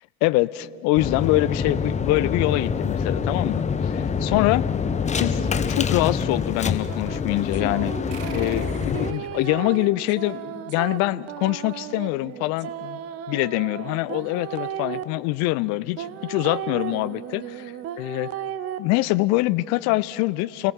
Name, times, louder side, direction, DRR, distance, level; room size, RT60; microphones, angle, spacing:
voice 1, 0.2-4.6 5.2-7.9 8.3-13.0 13.3-18.3 18.8-20.7, left 19 dB, 40° left, 18 dB, 0.6 m, -24 dB
sound 1, 1.0-9.1, left 6 dB, 15° left, 0.8 m, -26 dB
sound 2, 6.9-15.0 16.0-18.8, right 10 dB, 35° right, 0.8 m, -35 dB
sound 3, 8.1-11.1, right 11 dB, 55° right, 1.3 m, -47 dB
29.5 x 17.5 x 5.6 m, 2.3 s
figure-of-eight pair, 75°, 44 cm